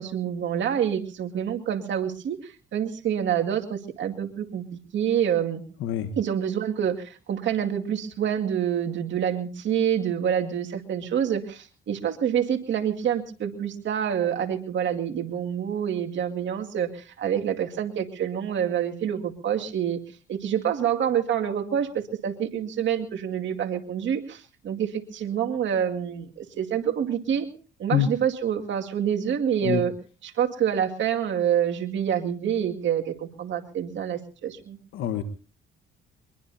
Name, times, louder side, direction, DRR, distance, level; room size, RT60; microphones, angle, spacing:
voice 1, 0.0-5.6 6.2-20.0 20.3-27.5 27.8-29.9 30.2-34.8, right 9 dB, 70° right, 4 dB, 2.2 m, -27 dB
voice 2, 5.8-6.1 27.9-28.1 29.6-29.8 34.9-35.2, left 10 dB, 85° left, 8 dB, 1.3 m, -25 dB
23.0 x 22.0 x 2.8 m, 0.38 s
cardioid pair, 90°, 20 cm